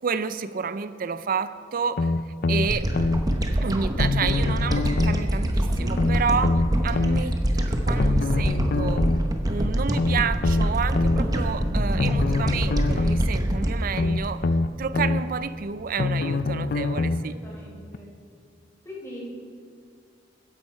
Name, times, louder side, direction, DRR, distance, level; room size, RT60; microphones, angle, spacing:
voice 1, 0.0-2.1 2.5-2.9 3.6-9.1 9.5-14.5 14.8-17.4, right 5 dB, 50° right, 13 dB, 0.5 m, -30 dB
sound 1, 2.0-3.2 4.0-5.2 5.9-7.2 8.0-9.2 9.9-11.2 12.0-13.2 13.9-15.2 16.0-17.2 17.9-18.0, left 3 dB, 50° left, 0.4 m, -24 dB
sound 2, 2.7-15.2, equal, 20° right, 0.9 m, -25 dB
voice 2, 5.7-6.0 17.2-18.1 18.8-19.2, equal, 15° left, -5 dB, 3.7 m, -40 dB
13.5 x 10.5 x 4.4 m, 2.3 s
head